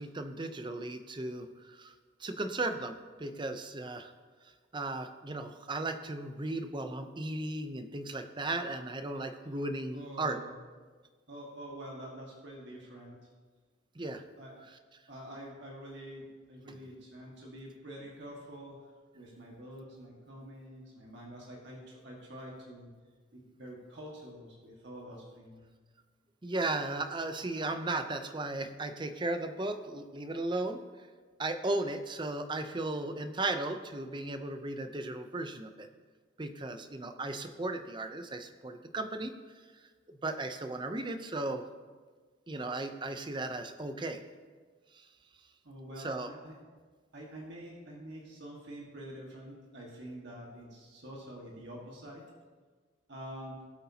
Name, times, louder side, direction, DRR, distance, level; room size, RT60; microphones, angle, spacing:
voice 1, 0.0-1.9 2.2-4.1 4.7-10.4 14.0-14.2 16.7-16.8 26.4-30.8 31.4-35.9 36.4-39.3 40.1-41.6 42.5-44.2 44.9-45.0 46.0-46.3, right 2 dB, 25° right, 8 dB, 0.6 m, -36 dB
voice 2, 9.9-10.5 11.3-13.2 14.4-14.6 15.1-18.8 19.1-22.9 23.3-25.6 45.6-46.5 47.1-52.2 53.1-53.6, equal, 60° right, -2 dB, 1.6 m, -46 dB
18.0 x 8.1 x 2.8 m, 1.4 s
head